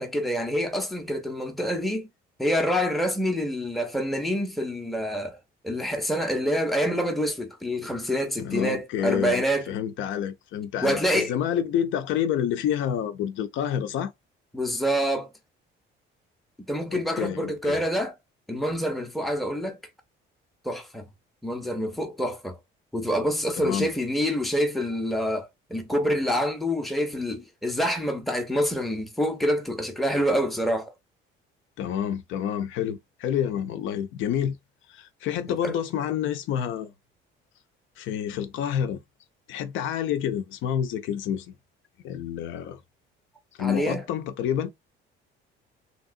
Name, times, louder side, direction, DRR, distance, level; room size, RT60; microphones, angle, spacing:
voice 1, 0.0-2.1 2.4-5.4 5.6-9.7 10.8-11.3 14.5-15.3 16.7-18.1 18.5-19.8 20.6-21.1 21.4-22.6 22.9-30.9 35.6-35.8 43.6-44.0, equal, ahead, 0.6 m, -26 dB
voice 2, 8.4-14.1 16.9-17.8 23.6-23.9 31.8-34.6 34.9-36.9 38.0-39.0 39.5-41.5 42.0-42.8 43.6-44.7, left 9 dB, 65° left, 0.5 m, -28 dB
2.9 x 2.7 x 2.5 m
cardioid pair, 140°, 21 cm